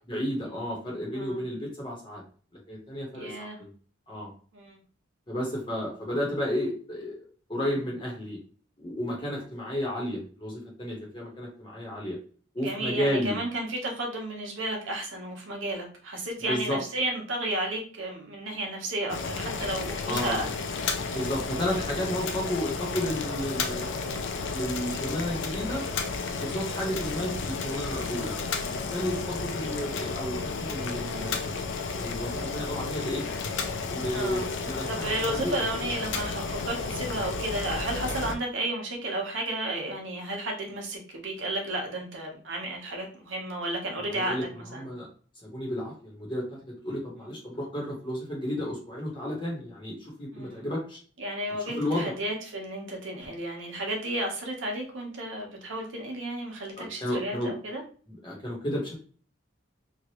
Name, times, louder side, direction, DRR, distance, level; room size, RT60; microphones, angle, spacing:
voice 1, 0.1-2.2 2.7-3.7 4.1-4.3 5.3-7.1 7.5-8.4 8.8-12.2 12.5-13.4 16.5-16.8 20.0-20.4 21.1-24.0 24.5-25.8 26.2-31.4 32.0-33.3 33.9-35.6 44.0-45.1 45.4-51.0 51.6-52.1 56.8-57.5 58.1-59.0, equal, 25° left, -3 dB, 1.1 m, -32 dB
voice 2, 3.1-3.6 4.5-4.8 12.6-20.5 34.1-34.5 34.9-44.9 50.3-50.6 51.2-57.8, right 1 dB, 75° right, 1 dB, 0.9 m, -33 dB
Boiling, 19.1-38.3, left 4 dB, 70° left, 0.4 m, -32 dB
3.1 x 2.4 x 2.9 m, 0.41 s
head